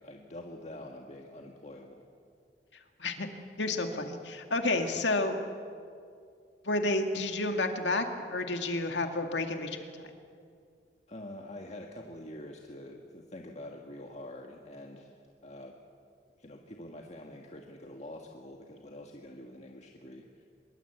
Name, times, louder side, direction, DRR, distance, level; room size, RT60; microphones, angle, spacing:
voice 1, 0.0-2.0 11.1-15.8 16.4-20.5, left 1 dB, 40° left, 1 dB, 1.7 m, -46 dB
voice 2, 2.7-3.3 3.6-5.4 6.6-9.9, left 2 dB, 90° left, 5 dB, 2.2 m, -30 dB
24.5 x 23.0 x 8.2 m, 2.3 s
head